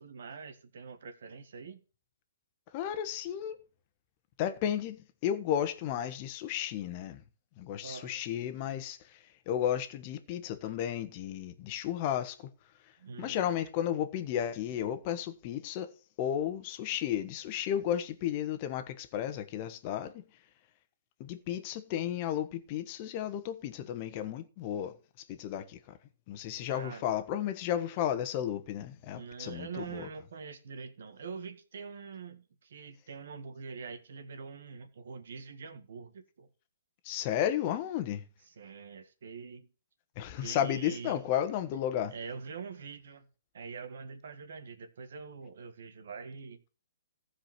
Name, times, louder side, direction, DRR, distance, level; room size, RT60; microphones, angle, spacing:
voice 1, 0.0-1.8 7.8-8.2 13.0-13.5 26.7-27.0 29.1-36.5 37.4-37.6 38.5-39.7 40.4-41.3 42.1-43.3 43.5-46.6, right 5 dB, 65° right, 1.7 m, -44 dB
voice 2, 2.7-3.6 4.4-7.2 7.6-9.2 9.5-12.5 13.2-15.9 16.2-20.2 21.2-25.0 25.3-25.8 26.3-30.1 37.0-38.2 40.2-42.1, left 10 dB, 35° left, 1.3 m, -33 dB
15.0 x 5.0 x 6.0 m
hypercardioid pair, 150°, 0 cm